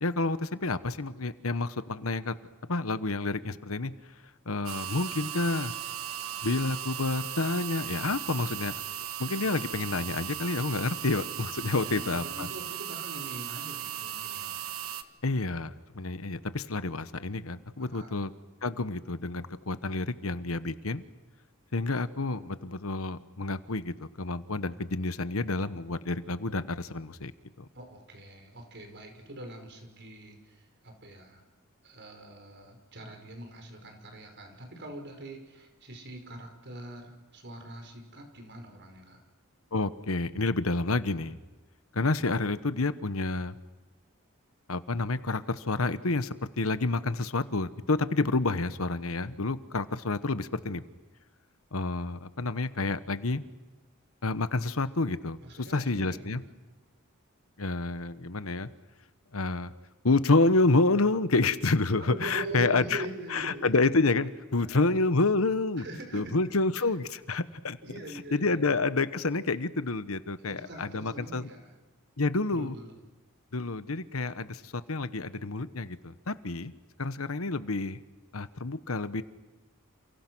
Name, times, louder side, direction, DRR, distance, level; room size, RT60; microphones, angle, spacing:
voice 1, 0.0-2.3 2.7-3.9 4.5-5.7 6.4-8.7 9.2-12.5 15.2-18.3 18.6-21.0 21.7-27.3 27.6-27.7 39.7-41.4 41.9-43.6 44.7-50.8 51.7-53.4 54.2-55.4 55.7-56.4 57.6-58.7 59.3-59.7 60.0-63.0 63.3-65.8 66.1-67.8 68.3-71.5 72.2-72.8 73.5-76.7 77.0-78.0 78.3-79.2, left 3 dB, 75° left, 13 dB, 1.2 m, -29 dB
sound 1, 4.7-15.0, right 11 dB, 75° right, 1.6 m, -37 dB
voice 2, 11.7-14.6 17.8-18.2 27.7-31.4 31.8-39.2 55.4-56.5 62.0-63.8 64.6-65.0 65.8-66.4 67.8-68.8 70.4-71.7 72.5-73.0, right 1 dB, 55° right, 4 dB, 5.3 m, -43 dB
29.5 x 28.5 x 6.3 m, 1.2 s
head